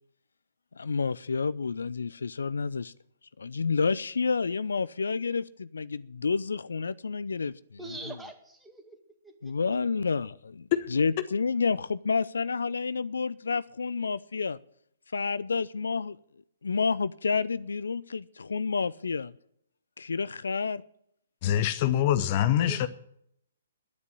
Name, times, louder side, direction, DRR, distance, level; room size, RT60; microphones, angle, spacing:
voice 1, 0.8-2.9 3.4-7.5 9.4-14.6 15.1-16.2 16.6-19.3 20.0-20.8 22.6-22.7, left 5 dB, 75° left, 0.5 m, -29 dB
voice 2, 7.8-9.0 9.2-9.5 22.6-22.9, right 2 dB, 5° right, 2.0 m, -43 dB
voice 3, 21.4-22.9, left 11 dB, 40° left, 0.8 m, -24 dB
10.5 x 9.6 x 9.9 m
figure-of-eight pair, 130°, 0 cm